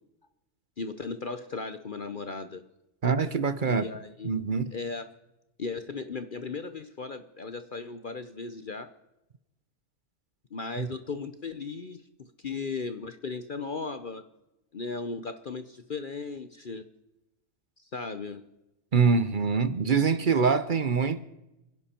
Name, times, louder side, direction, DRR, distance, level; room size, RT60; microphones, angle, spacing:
voice 1, 0.8-2.6 3.7-4.4 4.7-5.1 5.6-8.9 10.5-12.0 12.4-14.2 14.7-16.8 17.9-18.4, left 4 dB, 45° left, 0.7 m, -36 dB
voice 2, 3.0-3.9 4.2-4.7 10.8-10.9 18.9-21.3, right 5 dB, 45° right, 0.7 m, -24 dB
29.0 x 10.5 x 4.4 m
omnidirectional pair, 1.6 m